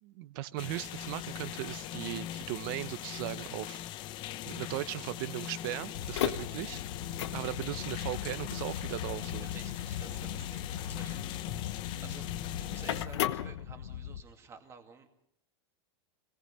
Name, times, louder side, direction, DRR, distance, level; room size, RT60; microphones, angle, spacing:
voice 1, 0.0-3.8 4.5-6.8 7.3-9.5, right 16 dB, 50° right, 15 dB, 1.0 m, -38 dB
sound 1, 0.6-13.1, left 12 dB, 30° left, 0.8 m, -41 dB
sound 2, 5.9-14.2, left 11 dB, 80° left, 1.1 m, -37 dB
voice 2, 9.4-11.2 11.7-15.1, right 6 dB, 20° right, 5 dB, 2.4 m, -52 dB
26.5 x 18.5 x 5.6 m, 0.73 s
supercardioid pair, 155°, 15 cm